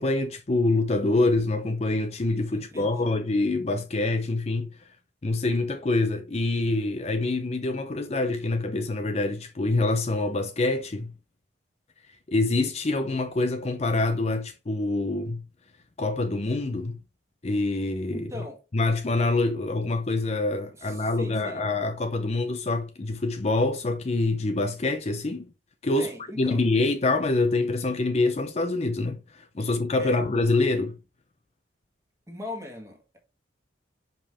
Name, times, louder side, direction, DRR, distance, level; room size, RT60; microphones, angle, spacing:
voice 1, 0.0-4.7 5.2-11.1 12.3-15.4 16.0-17.0 17.4-18.3 18.7-25.5 25.8-26.1 26.4-31.0, left 2 dB, 35° left, 0.5 m, -25 dB
voice 2, 2.5-3.2 18.1-18.6 20.8-21.7 26.0-26.6 30.0-30.2 32.3-33.2, left 1 dB, 15° right, 1.6 m, -40 dB
5.3 x 5.2 x 3.4 m
head